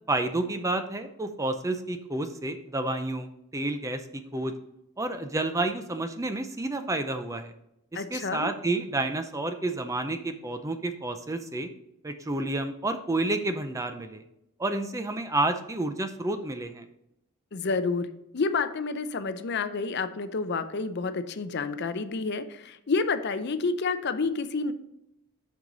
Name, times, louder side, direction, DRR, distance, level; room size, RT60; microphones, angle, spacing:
voice 1, 0.1-4.5 5.0-7.5 7.9-11.7 12.0-14.2 14.6-16.8, right 2 dB, 15° right, 8 dB, 0.4 m, -30 dB
voice 2, 7.9-8.5 17.5-24.7, left 4 dB, 50° left, 11 dB, 0.5 m, -29 dB
7.7 x 5.5 x 3.9 m, 0.81 s
head